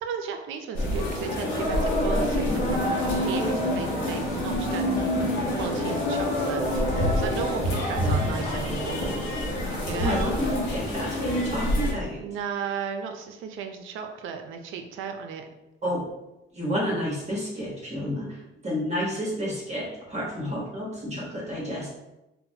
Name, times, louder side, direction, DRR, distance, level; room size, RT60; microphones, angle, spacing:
voice 1, 0.0-5.0 5.6-6.6 6.9-9.0 9.8-10.3 12.2-15.4, right 7 dB, 85° right, 5 dB, 0.4 m, -35 dB
sound 1, 0.7-11.9, left 1 dB, 85° left, 0.8 m, -26 dB
voice 2, 8.0-8.4 10.0-12.2 15.8-16.0 16.5-21.9, equal, 35° right, -5 dB, 1.1 m, -30 dB
4.0 x 2.1 x 2.7 m, 0.96 s
cardioid pair, 90°, 20 cm